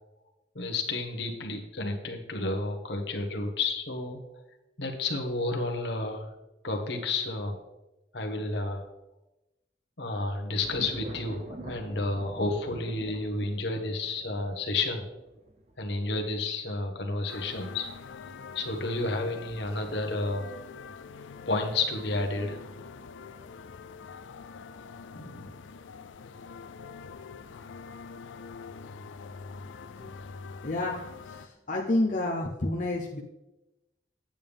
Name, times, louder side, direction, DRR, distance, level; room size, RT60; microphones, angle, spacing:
voice 1, 0.5-4.2 4.8-6.3 6.6-7.6 8.1-8.8 10.0-15.0 15.8-18.3 18.5-20.5 21.5-22.6 25.1-25.5, left 2 dB, 65° left, 3 dB, 1.3 m, -31 dB
sound 1, 10.6-20.3 20.7-21.2, right 1 dB, 35° right, 0.8 m, -46 dB
sound 2, 17.3-31.5, left 5 dB, 80° left, 0.4 m, -45 dB
voice 2, 30.6-33.2, left 1 dB, 40° left, -1 dB, 0.7 m, -30 dB
9.0 x 8.8 x 3.5 m, 0.98 s
head